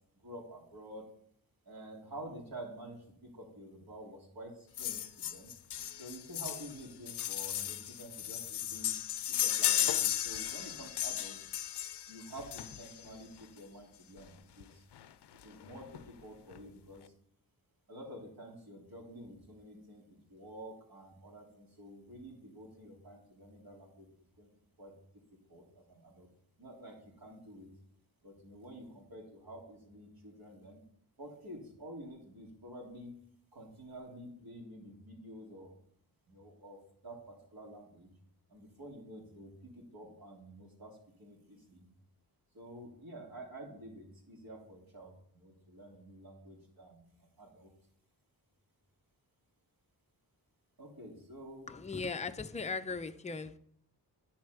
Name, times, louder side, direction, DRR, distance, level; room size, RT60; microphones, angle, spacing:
voice 1, 0.1-1.0 1.6-5.5 6.0-8.9 9.3-11.4 12.1-14.8 15.4-17.0 17.9-24.1 24.4-24.5 24.8-24.9 25.5-26.3 26.6-27.7 28.2-30.8 31.2-33.2 33.5-35.8 36.3-38.1 38.5-41.9 42.5-47.7 50.8-51.7, right 1 dB, 60° right, -2 dB, 3.4 m, -49 dB
sound 1, 4.8-13.1 14.2-14.3 14.6-14.7 14.9-15.1 15.4-16.0 16.5-16.6, left 11 dB, 75° left, 0.6 m, -35 dB
voice 2, 51.7-53.6, left 4 dB, 15° left, 8 dB, 0.5 m, -38 dB
10.5 x 4.4 x 6.8 m, 0.65 s
wide cardioid pair, 75°, 41 cm